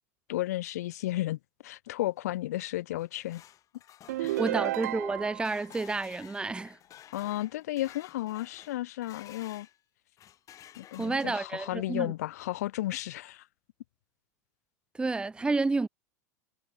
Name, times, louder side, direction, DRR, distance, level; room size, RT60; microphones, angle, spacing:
voice 1, 0.3-3.4 4.2-4.4 7.1-9.7 10.8-13.5, left 15 dB, 75° left, 0.6 m, -33 dB
sound 1, 2.8-9.8 10.2-11.6, left 12 dB, 40° left, 3.6 m, -53 dB
sound 2, 4.1-5.6, right 15 dB, 75° right, 0.4 m, -32 dB
voice 2, 4.4-6.8 11.0-12.1 15.0-15.9, right 3 dB, 10° right, 0.8 m, -30 dB
hypercardioid pair, 95°, 9 cm